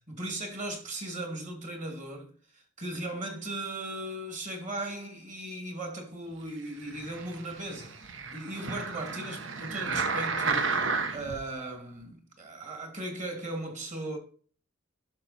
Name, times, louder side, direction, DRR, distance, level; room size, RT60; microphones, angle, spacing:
voice 1, 0.1-2.3 2.5-14.2, right 1 dB, 40° right, 2.4 m, -38 dB
sound 1, 6.8-11.4 12.0-12.1, right 4 dB, 85° right, 1.1 m, -32 dB
12.0 x 6.2 x 4.2 m
head